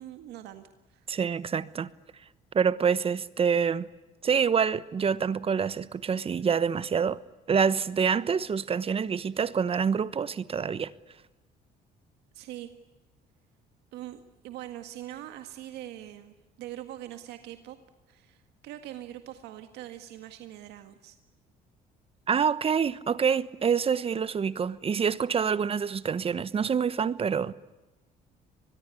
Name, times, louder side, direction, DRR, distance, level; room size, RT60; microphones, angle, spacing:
voice 1, 0.0-1.1 12.3-12.7 13.9-17.8 18.1-21.2, right 13 dB, 85° right, 1.8 m, -43 dB
voice 2, 1.1-1.9 2.5-3.9 4.2-7.2 7.5-10.9 22.3-27.5, right 6 dB, 35° right, 1.1 m, -26 dB
24.5 x 21.0 x 9.8 m
cardioid pair, 110°, 17 cm